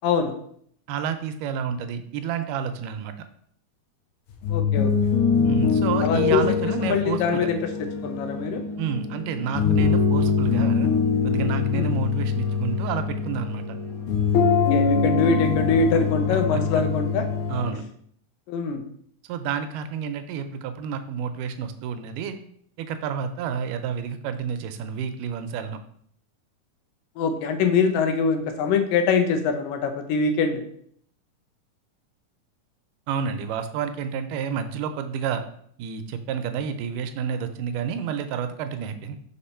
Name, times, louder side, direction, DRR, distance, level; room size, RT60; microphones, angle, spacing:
voice 1, 0.0-0.3 4.5-4.9 6.0-7.6 8.0-8.6 11.7-11.9 14.7-17.3 18.5-18.8 27.2-30.6, left 5 dB, 90° left, 6 dB, 2.4 m, -23 dB
voice 2, 0.9-3.1 5.5-7.5 8.8-10.9 11.2-13.8 16.3-16.6 17.5-17.8 19.3-22.4 22.8-25.8 33.1-35.4 35.8-39.2, right 7 dB, 80° right, 8 dB, 2.1 m, -30 dB
sound 1, 4.3-17.7, left 5 dB, 70° left, 2.2 m, -23 dB
5.3 x 4.4 x 4.3 m, 0.64 s
omnidirectional pair, 3.8 m